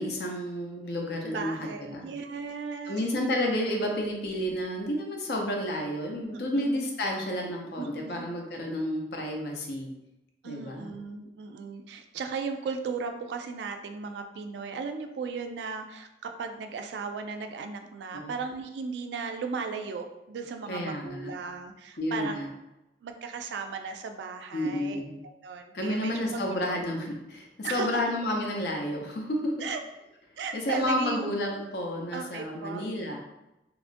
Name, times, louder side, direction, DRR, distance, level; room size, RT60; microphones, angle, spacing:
voice 1, 0.0-2.1 2.9-9.9 10.4-10.9 18.1-18.3 20.7-21.3 22.0-22.5 24.5-25.2 25.7-29.7 30.5-33.2, left 1 dB, 65° left, 1 dB, 0.5 m, -31 dB
voice 2, 1.2-3.0 6.3-6.7 7.8-8.2 10.4-22.4 23.0-26.8 27.6-28.0 29.6-29.8 30.4-31.3 32.1-32.8, right 5 dB, 80° right, 6 dB, 0.3 m, -36 dB
2.9 x 2.4 x 2.5 m, 0.93 s
head